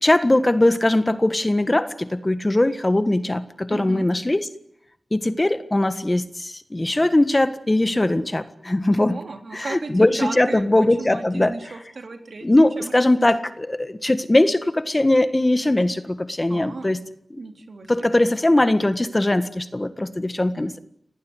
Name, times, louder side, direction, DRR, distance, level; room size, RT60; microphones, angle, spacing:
voice 1, 0.0-4.5 5.1-9.2 9.5-11.5 12.4-17.0 17.3-17.4 17.9-20.8, left 1 dB, 25° left, 11 dB, 1.6 m, -20 dB
voice 2, 3.7-4.1 9.1-12.5 12.8-13.2 16.5-17.0 17.4-17.9, right 3 dB, 75° right, 5 dB, 3.5 m, -35 dB
26.5 x 18.5 x 9.7 m, 0.71 s
wide cardioid pair, 80°, 0 cm